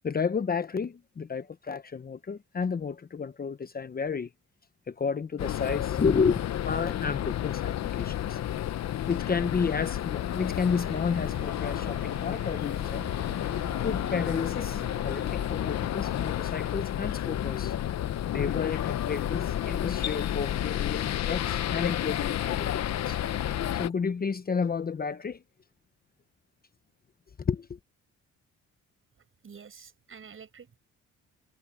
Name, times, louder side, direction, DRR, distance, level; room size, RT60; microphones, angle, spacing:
voice 1, 0.0-4.3 4.9-8.4 9.1-13.1 13.8-17.7 18.3-23.2 23.8-25.4 27.5-27.7, left 5 dB, 30° left, 0.9 m, -31 dB
sound 1, 5.4-23.9, left 11 dB, 60° left, 0.9 m, -31 dB
sound 2, 10.4-15.6, right 10 dB, 75° right, 3.7 m, -48 dB
voice 2, 29.4-30.8, right 6 dB, 45° right, 7.7 m, -48 dB
cardioid pair, 90°, 30 cm